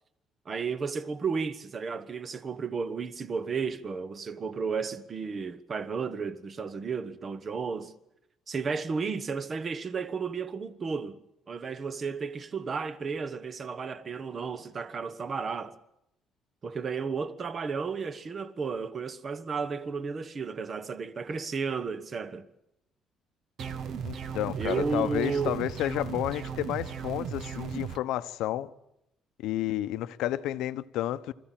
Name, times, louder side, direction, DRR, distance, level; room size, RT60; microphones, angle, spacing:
voice 1, 0.5-7.9 8.5-11.2 11.5-15.7 16.6-22.5 24.5-25.6, right 5 dB, 25° right, 1.0 m, -33 dB
sound 1, 23.6-28.0, right 7 dB, 55° right, 1.0 m, -36 dB
voice 2, 24.0-28.7 29.4-31.3, left 13 dB, 85° left, 0.9 m, -31 dB
25.0 x 15.0 x 9.1 m
cardioid pair, 175°, 0 cm